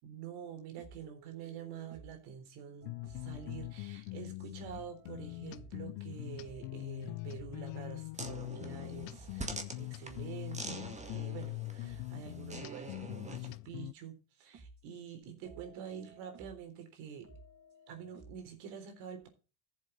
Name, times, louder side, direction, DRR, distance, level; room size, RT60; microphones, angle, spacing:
voice 1, 0.0-17.3 17.9-19.3, right 8 dB, 70° right, 3.8 m, -47 dB
sound 1, 0.8-2.3 2.6-11.5 11.8-12.9 13.9-14.0 14.5-14.9 15.2-16.9 17.2-18.6, right 3 dB, 40° right, 5.3 m, -57 dB
sound 2, 2.8-13.9, left 23 dB, 60° left, 0.6 m, -43 dB
sound 3, 8.1-13.6, right 3 dB, 15° right, 2.0 m, -46 dB
14.5 x 7.5 x 3.9 m
supercardioid pair, 90°, 41 cm